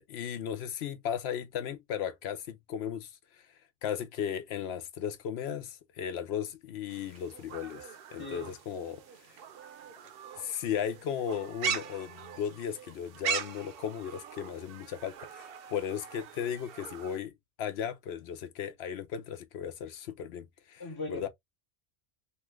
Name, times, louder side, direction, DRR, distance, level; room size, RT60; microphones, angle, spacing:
voice 1, 0.0-3.1 3.8-9.0 10.4-17.3 17.6-20.8 21.1-21.3, left 8 dB, 80° left, 0.9 m, -36 dB
sound 1, 6.9-17.2, right 7 dB, 70° right, 0.7 m, -40 dB
voice 2, 8.2-8.6 20.8-21.3, left 2 dB, 25° left, 0.5 m, -39 dB
2.9 x 2.3 x 3.0 m
omnidirectional pair, 1.1 m